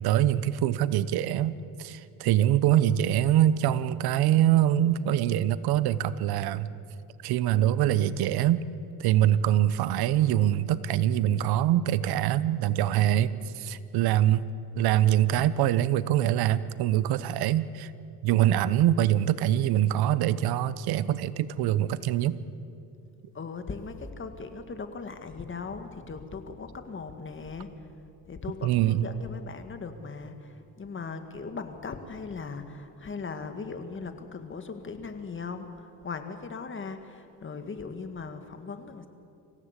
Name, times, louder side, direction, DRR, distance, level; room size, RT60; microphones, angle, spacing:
voice 1, 0.0-6.7 7.2-8.6 9.0-14.5 14.8-17.9 18.2-22.4 28.6-29.1, right 12 dB, 85° right, 16 dB, 0.9 m, -24 dB
voice 2, 23.3-27.9 28.2-39.1, left 4 dB, 35° left, 7 dB, 2.0 m, -39 dB
26.0 x 16.5 x 8.3 m, 2.6 s
cardioid pair, 115°, 37 cm